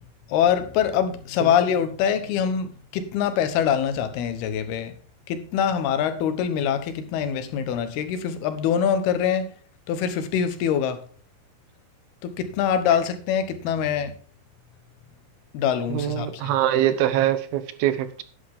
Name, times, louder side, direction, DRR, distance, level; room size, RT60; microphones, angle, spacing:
voice 1, 0.3-4.9 5.3-9.5 9.9-11.0 12.2-14.1 15.5-16.5, left 8 dB, 90° left, 3.2 m, -24 dB
voice 2, 15.9-18.2, right 12 dB, 80° right, 2.9 m, -23 dB
11.5 x 10.5 x 3.6 m
omnidirectional pair, 4.4 m